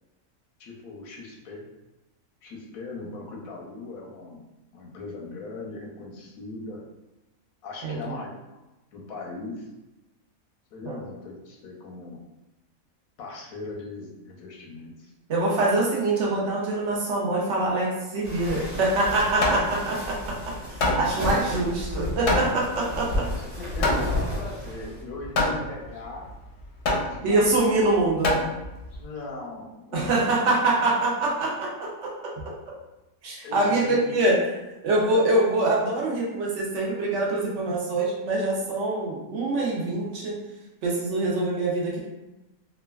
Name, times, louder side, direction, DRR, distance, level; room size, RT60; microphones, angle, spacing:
voice 1, 0.6-1.6 2.4-4.4 4.7-6.8 7.6-8.4 8.9-9.7 10.7-12.2 13.2-15.1 20.6-20.9 22.7-23.2 23.5-26.3 26.9-27.6 29.0-30.4 33.4-34.0, left 3 dB, 85° left, -1 dB, 1.1 m, -39 dB
voice 2, 15.3-20.4 20.7-23.1 27.2-28.4 29.9-32.3 33.2-34.6 34.8-40.4 40.8-42.0, right 2 dB, 65° right, -3 dB, 0.8 m, -24 dB
sound 1, 18.2-25.0, left 1 dB, 35° right, 0.8 m, -32 dB
Hammer, 18.8-29.0, left 2 dB, 65° left, 0.8 m, -28 dB
3.0 x 2.2 x 2.3 m, 1.0 s
omnidirectional pair, 1.5 m